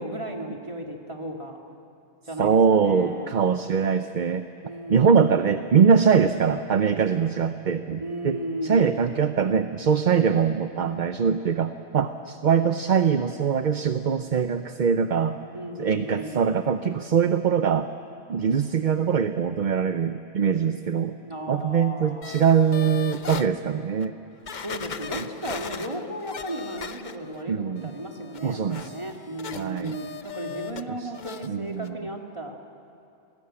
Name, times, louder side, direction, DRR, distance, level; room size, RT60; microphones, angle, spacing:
voice 1, 0.0-1.6 2.3-3.5 4.6-5.4 8.0-9.1 15.5-16.5 21.2-22.4 24.6-32.6, right 1 dB, 25° right, 1 dB, 2.3 m, -35 dB
voice 2, 2.4-4.4 4.9-15.4 15.8-17.9 18.3-21.1 21.5-24.2 25.2-25.3 27.5-27.9 28.4-28.9 29.5-30.0 30.9-31.1 31.4-32.0, right 6 dB, 50° right, 9 dB, 0.7 m, -22 dB
sound 1, 22.2-23.5 24.0-24.1 24.5-27.4 27.8-30.8 31.1-31.5 31.8-31.9, left 6 dB, 45° left, 0.8 m, -38 dB
27.5 x 19.5 x 8.8 m, 2.6 s
omnidirectional pair, 1.2 m